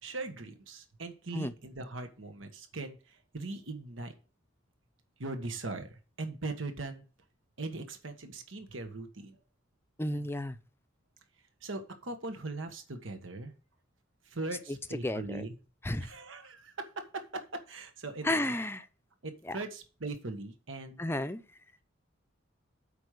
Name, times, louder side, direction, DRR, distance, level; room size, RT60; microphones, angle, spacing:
voice 1, 0.0-4.1 5.2-7.1 7.6-9.4 11.6-13.5 14.2-15.6 16.0-18.5 19.2-21.0, right 2 dB, 75° right, 1.5 m, -40 dB
voice 2, 10.0-10.6 14.7-15.5 15.8-16.1 18.2-18.9 19.4-19.6 21.0-21.4, left 1 dB, 10° left, 0.6 m, -32 dB
8.3 x 5.4 x 6.5 m
head